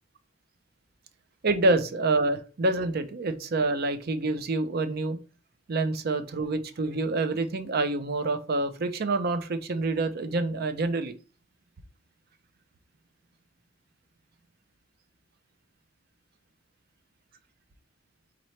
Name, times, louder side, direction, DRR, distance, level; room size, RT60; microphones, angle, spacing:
voice 1, 1.4-5.2 5.7-11.1, right 2 dB, 50° right, 10 dB, 0.5 m, -27 dB
4.2 x 3.9 x 3.1 m, 0.36 s
head